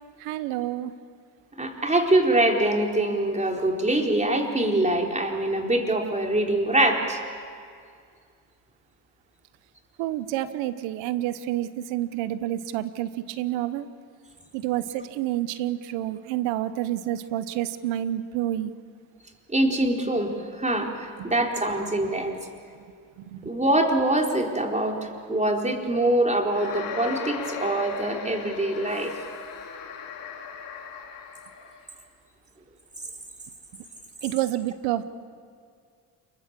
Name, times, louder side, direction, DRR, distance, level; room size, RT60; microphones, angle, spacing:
voice 1, 0.2-0.9 10.0-13.1 13.4-13.9 14.5-18.7 23.3-23.4 34.2-35.1, right 13 dB, 85° right, 14 dB, 1.1 m, -28 dB
voice 2, 1.6-7.2 19.5-20.9 21.2-22.3 23.4-25.0 25.3-29.1, right 1 dB, 15° right, 1 dB, 4.4 m, -24 dB
sound 1, 26.5-31.8, left 6 dB, 75° left, 3.6 m, -37 dB
28.0 x 22.5 x 7.6 m, 2.2 s
supercardioid pair, 60°, 42 cm